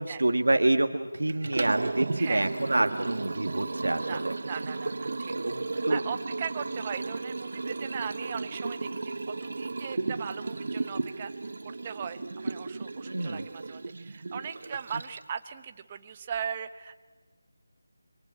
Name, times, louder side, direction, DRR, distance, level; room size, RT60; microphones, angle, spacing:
voice 1, 0.0-4.3 5.3-6.0 13.0-13.4, right 2 dB, 80° right, 6 dB, 1.6 m, -27 dB
Liquid, 1.3-15.4, right 3 dB, 60° right, 1.0 m, -34 dB
voice 2, 4.0-5.3 5.7-11.3 11.6-17.0, right 7 dB, 25° right, 9 dB, 0.9 m, -38 dB
27.0 x 23.5 x 8.7 m, 1.4 s
figure-of-eight pair, 165°, 0 cm